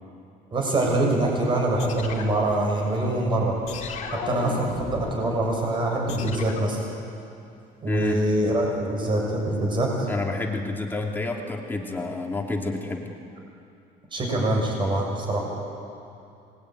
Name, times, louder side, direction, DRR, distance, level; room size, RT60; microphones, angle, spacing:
voice 1, 0.5-3.6 4.1-6.8 7.8-10.1 14.1-15.4, right 1 dB, 30° right, 0 dB, 6.8 m, -24 dB
sound 1, 1.8-3.1 3.7-5.2 6.1-6.8, left 6 dB, 45° left, 2.9 m, -36 dB
voice 2, 7.9-8.2 10.1-13.1, left 3 dB, 10° left, 1 dB, 2.7 m, -29 dB
27.0 x 21.0 x 9.5 m, 2.6 s
cardioid pair, 155°, 17 cm